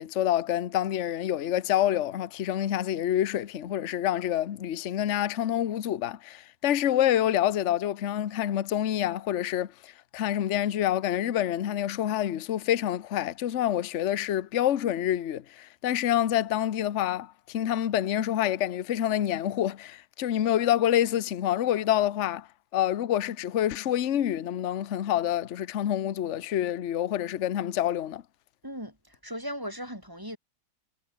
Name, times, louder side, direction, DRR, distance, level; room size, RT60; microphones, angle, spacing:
voice 1, 0.0-22.5 22.7-28.2, left 11 dB, 50° left, 0.9 m, -27 dB
voice 2, 28.6-30.4, equal, 10° right, 8.0 m, -38 dB
omnidirectional pair, 2.3 m